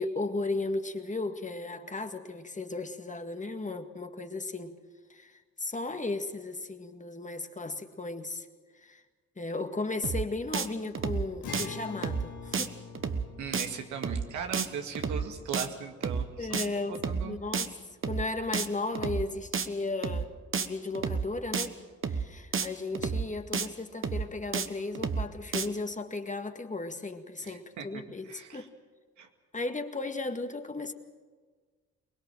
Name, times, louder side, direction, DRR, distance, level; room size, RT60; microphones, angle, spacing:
voice 1, 0.0-4.8 5.1-8.5 8.8-9.0 9.4-12.7 16.4-17.7 18.1-20.3 20.6-21.8 22.1-28.7 29.5-30.9, left 3 dB, 25° left, 7 dB, 1.9 m, -35 dB
sound 1, 10.0-10.3 10.5-10.7 10.9-11.3 11.5-11.7 12.0-12.3 12.5-12.7 12.9-13.3 13.5-13.7 14.0-14.3 14.5-14.7 14.9-15.3 15.5-15.7 16.0-16.3 16.5-16.7 16.9-17.3 17.5-17.7 18.0-18.3 18.5-18.7 18.9-19.3 19.5-19.7 20.0-20.3 20.5-20.7 20.9-21.3 21.5-21.7 22.0-22.3 22.5-22.7 22.9-23.3 23.5-23.7 24.0-24.3 24.5-24.7 24.9-25.3 25.5-25.7, right 5 dB, 45° right, 1.3 m, -30 dB
Acoustic guitar, 11.4-16.9, left 6 dB, 85° left, 2.3 m, -46 dB
voice 2, 13.4-17.4 27.4-28.7 29.2-29.3, right 7 dB, 85° right, 4 dB, 2.1 m, -39 dB
23.0 x 20.5 x 7.5 m, 1.5 s
supercardioid pair, 60°, 29 cm